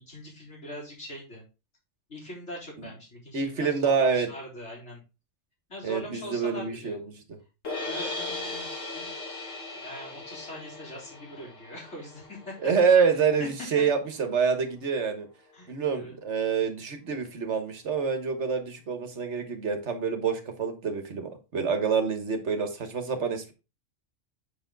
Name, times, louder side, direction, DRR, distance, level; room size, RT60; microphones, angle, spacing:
voice 1, 0.0-1.4 2.1-5.0 5.7-7.0 7.8-9.1 9.7-12.7 13.2-13.5 15.5-16.1, left 1 dB, 60° left, 4.0 m, -42 dB
voice 2, 3.3-4.3 5.8-7.2 12.6-15.3 15.7-23.5, right 6 dB, 65° right, 1.5 m, -27 dB
sound 1, 7.6-13.8, left 2 dB, 80° left, 2.0 m, -38 dB
7.0 x 6.0 x 3.9 m
omnidirectional pair, 1.3 m